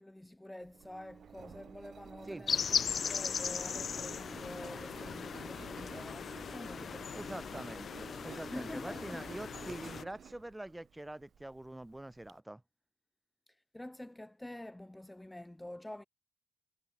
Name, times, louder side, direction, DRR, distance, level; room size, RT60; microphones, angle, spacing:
voice 1, 0.0-7.1 8.3-9.2 13.5-16.0, left 1 dB, 10° left, 3.6 m, -47 dB
Engine, 0.6-12.3, right 8 dB, 60° right, 2.3 m, -52 dB
sound 1, 2.5-10.0, left 6 dB, 50° left, 0.7 m, -38 dB
voice 2, 7.1-12.6, right 1 dB, 10° right, 1.1 m, -45 dB
cardioid pair, 100°, 0 cm